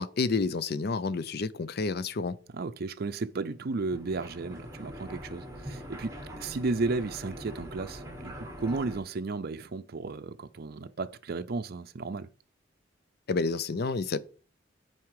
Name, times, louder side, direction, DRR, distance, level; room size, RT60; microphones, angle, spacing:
voice 1, 0.0-2.4 13.3-14.2, left 4 dB, 55° left, 0.6 m, -29 dB
voice 2, 2.5-12.3, right 3 dB, 55° right, 0.5 m, -34 dB
sound 1, 3.6-9.0, equal, 15° right, 1.5 m, -43 dB
9.4 x 4.4 x 4.8 m
head